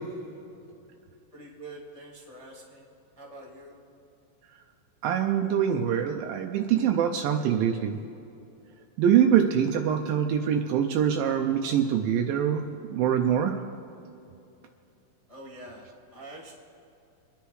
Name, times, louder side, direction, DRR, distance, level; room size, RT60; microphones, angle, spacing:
voice 1, 1.3-3.8 15.3-16.5, right 1 dB, 25° left, -5 dB, 0.8 m, -46 dB
voice 2, 5.0-8.0 9.0-13.6, right 9 dB, 85° right, 3 dB, 2.4 m, -24 dB
26.0 x 10.0 x 3.2 m, 2.7 s
omnidirectional pair, 4.0 m